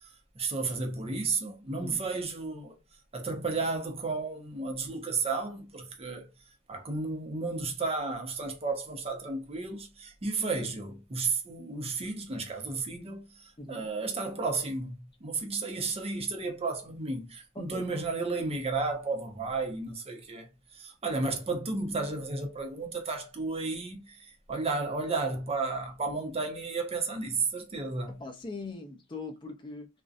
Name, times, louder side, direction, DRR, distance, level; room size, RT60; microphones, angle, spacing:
voice 1, 0.0-2.8 3.1-6.3 6.7-20.5 20.7-28.1, right 3 dB, 30° right, 0.6 m, -33 dB
voice 2, 13.6-13.9 17.5-17.8 28.1-29.9, left 3 dB, 25° left, 0.5 m, -41 dB
2.5 x 2.1 x 2.4 m
head